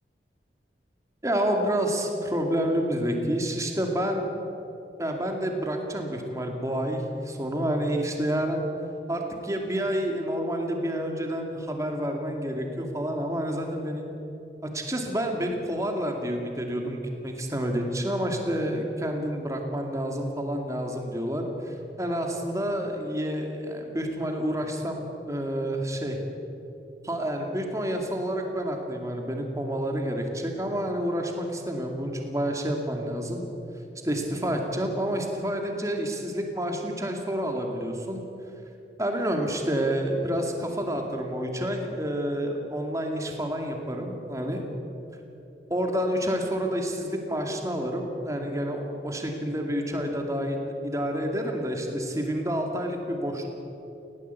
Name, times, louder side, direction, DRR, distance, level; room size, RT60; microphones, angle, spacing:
voice 1, 1.2-4.3 5.0-8.6 9.1-14.0 14.6-25.0 25.3-26.2 27.0-33.4 34.0-38.2 39.0-44.7 45.7-53.5, equal, 20° right, 3 dB, 2.3 m, -29 dB
19.0 x 17.0 x 8.3 m, 3.0 s
head